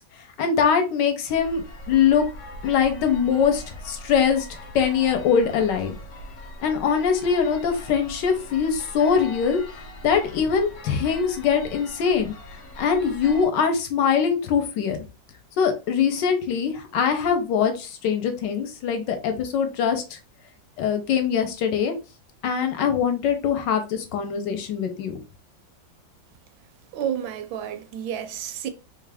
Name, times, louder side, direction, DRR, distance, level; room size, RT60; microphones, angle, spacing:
voice 1, 0.4-2.2 2.6-6.0 6.6-9.6 10.0-12.3 12.8-15.0 15.6-20.2 20.8-21.9 22.4-25.2, left 7 dB, 70° left, 1.2 m, -22 dB
sound 1, 1.3-13.5, left 1 dB, 55° left, 0.8 m, -41 dB
voice 2, 26.9-28.7, right 9 dB, 80° right, 1.3 m, -30 dB
3.5 x 2.4 x 3.4 m
omnidirectional pair, 2.1 m